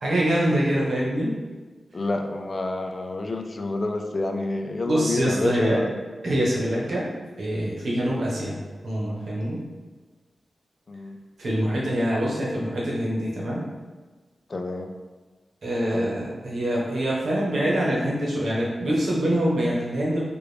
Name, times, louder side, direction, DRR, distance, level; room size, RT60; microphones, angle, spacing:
voice 1, 0.0-1.3 4.8-5.8 6.2-7.0 7.4-8.5 8.8-9.6 11.4-13.6 15.6-20.2, equal, 80° right, -4 dB, 1.1 m, -24 dB
voice 2, 1.9-5.9 10.9-11.2 14.5-14.9 15.9-16.1, left 2 dB, 40° left, 5 dB, 0.3 m, -28 dB
4.8 x 2.5 x 3.3 m, 1.3 s
wide cardioid pair, 105°, 0 cm